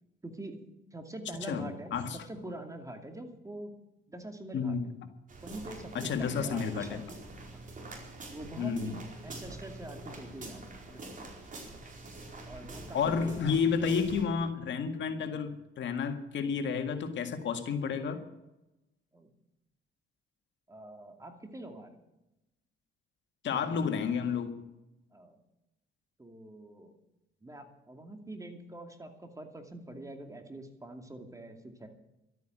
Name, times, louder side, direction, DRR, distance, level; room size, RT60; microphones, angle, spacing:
voice 1, 0.2-0.6 0.9-3.8 4.1-4.8 5.4-7.1 7.5-7.6 8.3-11.3 12.5-13.4 19.1-19.3 20.7-22.0 25.1-25.4 26.2-26.9 27.4-31.9, right 1 dB, 15° right, 5 dB, 2.5 m, -45 dB
sound 1, 5.3-14.3, right 2 dB, 40° right, 4.7 m, -46 dB
voice 2, 5.9-7.0 8.6-8.9 12.9-18.2 23.4-24.6, left 6 dB, 65° left, 6 dB, 1.9 m, -31 dB
13.0 x 9.2 x 9.1 m, 0.93 s
cardioid pair, 90°, 20 cm